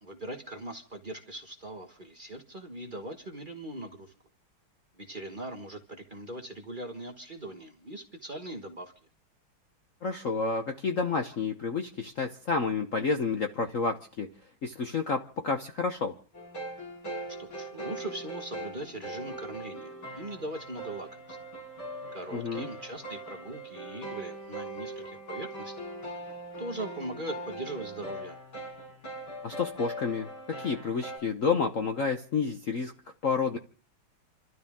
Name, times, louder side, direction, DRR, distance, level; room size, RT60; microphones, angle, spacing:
voice 1, 0.0-4.1 4.9-8.9 17.4-21.4 22.1-25.9 26.6-28.4, right 1 dB, 30° right, 1.3 m, -40 dB
voice 2, 10.0-14.3 14.6-16.1 22.3-22.7 29.4-32.9 33.2-33.6, left 5 dB, 50° left, 1.0 m, -30 dB
sound 1, 16.3-31.2, right 1 dB, 70° left, 7.3 m, -41 dB
28.5 x 12.5 x 3.6 m
omnidirectional pair, 2.3 m